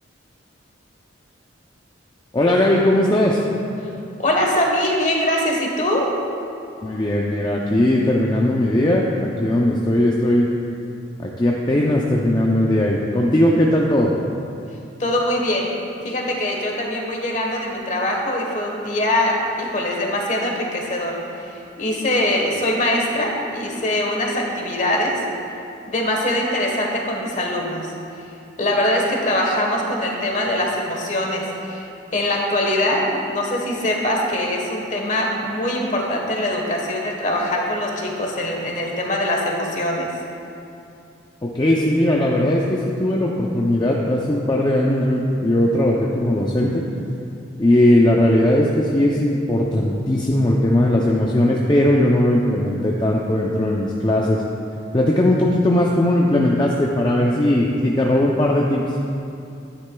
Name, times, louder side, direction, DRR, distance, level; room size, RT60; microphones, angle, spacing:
voice 1, 2.3-3.4 6.8-10.5 11.2-14.1 41.4-46.8 47.6-54.4 54.9-58.8, left 1 dB, 20° left, -2 dB, 0.5 m, -18 dB
voice 2, 4.2-6.1 15.0-15.7 16.0-25.2 25.9-27.9 28.6-31.9 32.1-40.1, left 1 dB, 40° left, 0 dB, 1.2 m, -22 dB
12.0 x 9.8 x 2.3 m, 2.6 s
head